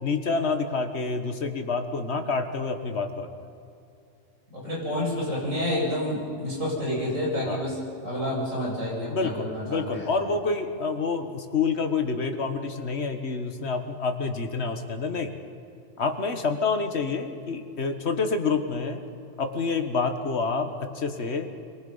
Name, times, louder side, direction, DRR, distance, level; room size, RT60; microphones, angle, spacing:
voice 1, 0.0-3.3 7.5-7.7 9.1-15.3 16.0-19.0 19.4-21.5, left 4 dB, 55° left, 6 dB, 1.7 m, -28 dB
voice 2, 4.5-10.1, left 1 dB, 85° right, -4 dB, 8.2 m, -29 dB
26.5 x 22.5 x 5.6 m, 2.6 s
omnidirectional pair, 1.3 m